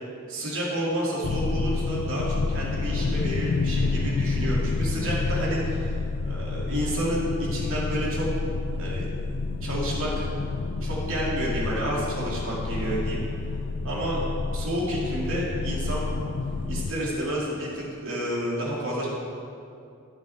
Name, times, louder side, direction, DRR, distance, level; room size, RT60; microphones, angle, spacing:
voice 1, 0.3-6.0 6.2-8.3 8.8-9.1 9.6-10.3 10.8-13.2 13.8-16.1 16.7-19.1, right 1 dB, 65° right, -6 dB, 2.6 m, -30 dB
sound 1, 1.2-16.9, left 3 dB, 50° left, 0.4 m, -29 dB
16.5 x 6.3 x 3.5 m, 2.5 s
head